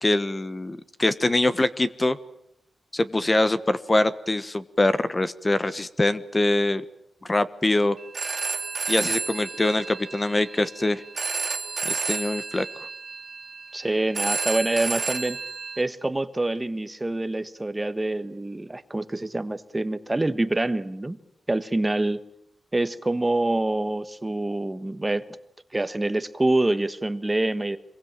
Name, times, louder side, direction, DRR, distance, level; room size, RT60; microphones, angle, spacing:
voice 1, 0.0-2.2 2.9-6.8 7.3-8.0 8.9-11.0 11.8-12.6, left 2 dB, 20° left, 13 dB, 1.2 m, -23 dB
Telephone, 8.0-15.8, right 4 dB, 45° right, 2.8 m, -31 dB
voice 2, 13.7-15.4 15.8-21.2 21.5-22.2 22.7-25.2 25.7-27.8, right 2 dB, 15° right, 12 dB, 1.4 m, -26 dB
26.0 x 22.5 x 9.0 m, 0.76 s
wide cardioid pair, 95°, 0 cm